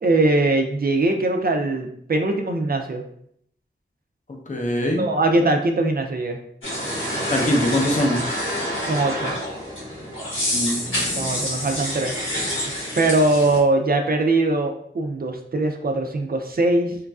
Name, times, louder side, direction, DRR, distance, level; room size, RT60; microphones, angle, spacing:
voice 1, 0.0-3.0 5.0-6.4 8.9-9.3 11.2-12.1 13.0-17.0, right 2 dB, 45° right, 4 dB, 0.4 m, -21 dB
voice 2, 4.5-5.1 7.3-8.2 10.5-11.4, left 1 dB, 40° left, 1 dB, 0.6 m, -23 dB
sound 1, 6.6-13.6, equal, 75° left, 1.0 m, -27 dB
3.0 x 2.4 x 2.3 m, 0.68 s
wide cardioid pair, 60°, 21 cm